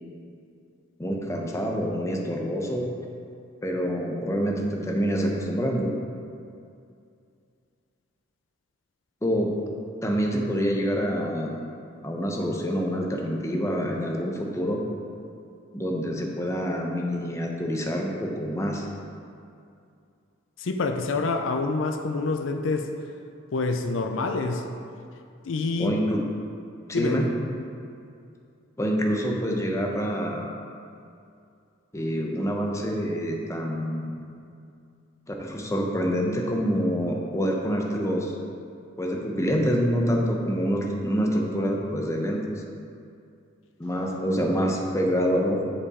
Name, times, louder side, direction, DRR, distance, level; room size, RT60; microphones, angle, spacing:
voice 1, 1.0-2.9 3.6-5.9 9.2-9.5 10.0-11.5 12.0-14.8 15.7-18.8 25.8-26.2 26.9-27.3 28.8-30.5 31.9-34.1 35.3-38.3 39.0-42.4 43.8-45.6, equal, 15° left, 0 dB, 0.7 m, -26 dB
voice 2, 20.6-22.9 23.5-24.7 25.4-25.9 26.9-27.3, left 3 dB, 75° left, 5 dB, 0.5 m, -27 dB
7.1 x 5.5 x 4.2 m, 2.4 s
head